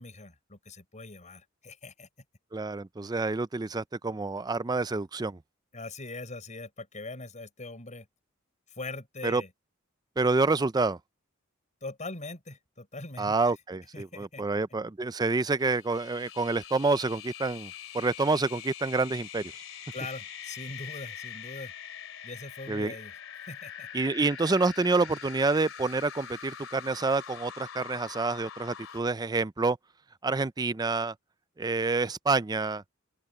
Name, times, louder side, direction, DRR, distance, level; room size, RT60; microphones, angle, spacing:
voice 1, 0.0-2.1 5.7-8.1 8.7-9.5 11.8-13.5 13.9-14.4 19.9-21.7 22.2-23.1 23.5-23.9, left 2 dB, 35° left, 6.6 m, -41 dB
voice 2, 2.5-5.4 9.2-9.4 10.2-11.0 13.2-19.5 22.7-22.9 23.9-29.8 30.2-31.1 31.6-32.8, right 3 dB, 20° right, 0.5 m, -28 dB
sound 1, 15.6-29.0, left 8 dB, 75° left, 2.9 m, -44 dB
open air
head